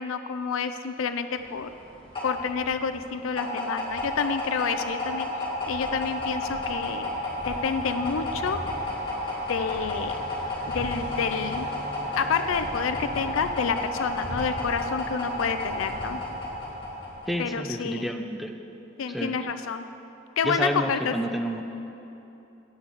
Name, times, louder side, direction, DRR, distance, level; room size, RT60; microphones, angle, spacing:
voice 1, 0.0-1.7 2.2-5.3 5.7-7.1 7.5-8.6 9.5-10.2 10.7-11.7 12.2-16.2 17.4-18.0 19.0-19.9 20.4-21.1, left 6 dB, 80° left, 9 dB, 0.4 m, -29 dB
sound 1, 1.4-17.4, left 1 dB, 25° left, 2.2 m, -31 dB
voice 2, 17.3-18.6 19.1-19.4 20.4-21.6, equal, ahead, 4 dB, 0.5 m, -29 dB
8.6 x 6.2 x 7.4 m, 3.0 s
head